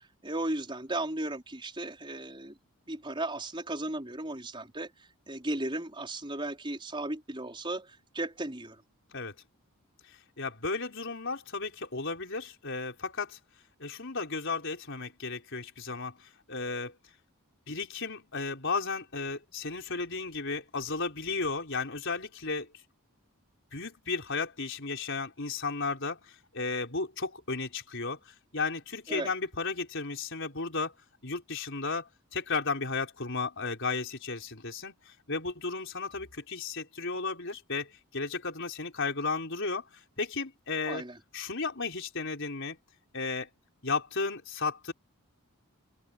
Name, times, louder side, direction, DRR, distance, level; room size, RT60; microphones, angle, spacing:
voice 1, 0.2-2.6 2.9-8.8 29.1-29.3 40.9-41.2, right 2 dB, 20° right, 4.7 m, -35 dB
voice 2, 10.4-13.4 13.8-16.9 17.7-22.8 23.7-30.9 31.2-41.0 41.3-42.8 43.1-43.5 43.8-44.9, left 4 dB, 55° left, 4.7 m, -34 dB
head